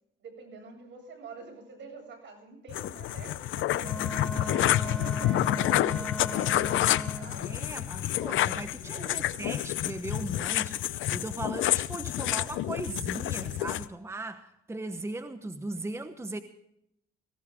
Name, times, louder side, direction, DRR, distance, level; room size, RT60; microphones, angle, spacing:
voice 1, 0.2-7.7 8.5-9.4, right 4 dB, 65° right, 7.8 m, -47 dB
sound 1, 2.7-13.9, left 13 dB, 80° left, 0.7 m, -29 dB
Wind instrument woodwind instrument, 3.8-7.4, equal, ahead, 0.6 m, -38 dB
voice 2, 7.4-16.4, right 2 dB, 15° right, 1.1 m, -38 dB
19.5 x 17.5 x 3.6 m
cardioid pair, 90°, 20 cm